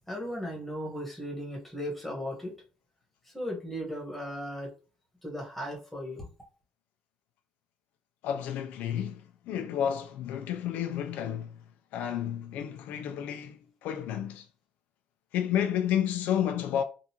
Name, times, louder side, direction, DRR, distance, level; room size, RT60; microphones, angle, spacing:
voice 1, 0.1-2.5 3.3-4.7 5.2-6.3, equal, 5° left, 1.2 m, -36 dB
voice 2, 8.2-11.6 11.9-14.5 15.3-16.8, left 9 dB, 90° left, 0.3 m, -31 dB
3.7 x 2.4 x 2.8 m
cardioid pair, 135°, 3 cm